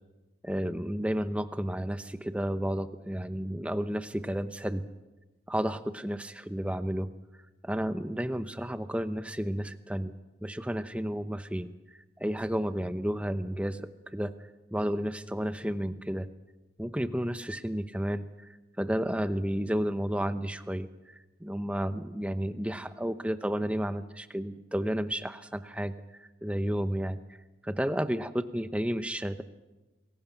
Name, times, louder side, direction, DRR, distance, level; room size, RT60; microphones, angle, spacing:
voice 1, 0.4-4.9 5.5-7.1 7.6-10.1 10.4-11.7 12.2-14.3 14.7-16.3 16.8-18.2 18.8-20.9 21.4-27.2 27.6-29.4, equal, 5° right, 11 dB, 0.8 m, -32 dB
26.5 x 22.0 x 5.8 m, 1.1 s
head